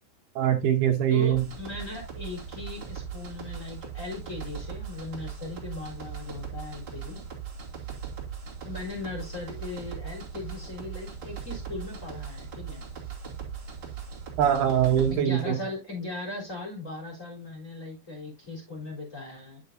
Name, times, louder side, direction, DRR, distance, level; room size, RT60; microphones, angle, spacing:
voice 1, 0.4-1.4 14.4-15.6, right 10 dB, 70° right, 2.9 m, -23 dB
voice 2, 1.1-7.2 8.6-12.8 15.1-19.6, left 3 dB, 20° left, 3.7 m, -38 dB
sound 1, 1.2-15.1, right 7 dB, 30° right, 2.7 m, -39 dB
11.0 x 6.5 x 2.7 m
omnidirectional pair, 5.0 m